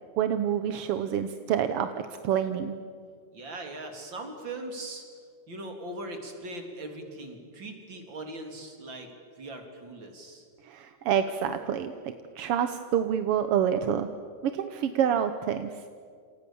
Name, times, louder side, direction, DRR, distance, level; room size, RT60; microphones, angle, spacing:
voice 1, 0.2-2.8 10.6-14.1 14.4-15.8, right 9 dB, 65° right, 9 dB, 1.6 m, -27 dB
voice 2, 3.3-5.0 5.5-9.1 9.4-10.5, right 2 dB, 40° right, 4 dB, 4.0 m, -40 dB
29.0 x 28.0 x 7.1 m, 2.2 s
omnidirectional pair, 3.4 m